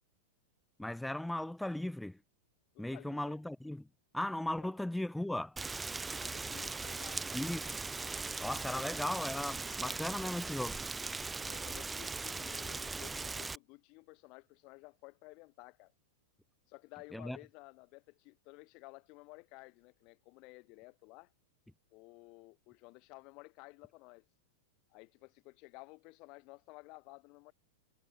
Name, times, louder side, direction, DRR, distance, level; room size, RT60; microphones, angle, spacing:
voice 1, 0.8-2.2 2.8-3.9 4.1-5.6 7.3-7.8 8.4-10.8 17.1-17.4, left 1 dB, 5° left, 2.7 m, -37 dB
voice 2, 2.7-3.4 4.6-4.7 6.1-7.4 8.6-8.8 11.4-15.9 16.7-21.3 21.9-24.2 24.9-27.5, left 27 dB, 50° left, 5.2 m, -54 dB
Rain, 5.6-13.6, right 3 dB, 10° right, 1.6 m, -39 dB
hypercardioid pair, 110°, 0 cm